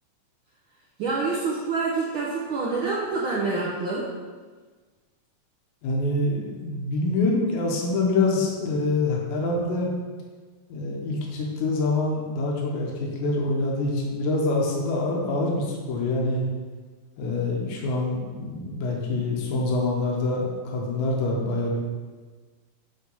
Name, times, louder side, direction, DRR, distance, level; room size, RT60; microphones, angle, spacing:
voice 1, 1.0-4.1, right 3 dB, 85° right, -4 dB, 1.1 m, -27 dB
voice 2, 5.8-9.9 10.7-16.5 17.2-21.8, left 2 dB, 80° left, -1 dB, 2.4 m, -25 dB
7.8 x 3.4 x 5.4 m, 1.4 s
omnidirectional pair, 3.5 m